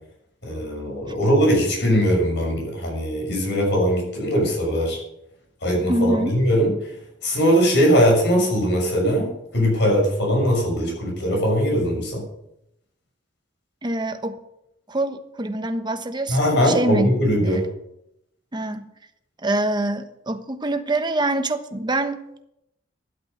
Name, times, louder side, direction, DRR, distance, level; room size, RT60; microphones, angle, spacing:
voice 1, 0.4-5.0 5.6-6.7 7.2-12.2 16.3-17.6, equal, 65° left, 6.8 m, -20 dB
voice 2, 5.9-6.4 13.8-14.4 14.9-17.2 17.4-17.7 18.5-18.9 19.4-22.4, right 1 dB, 25° right, 1.1 m, -25 dB
12.5 x 11.5 x 6.6 m
head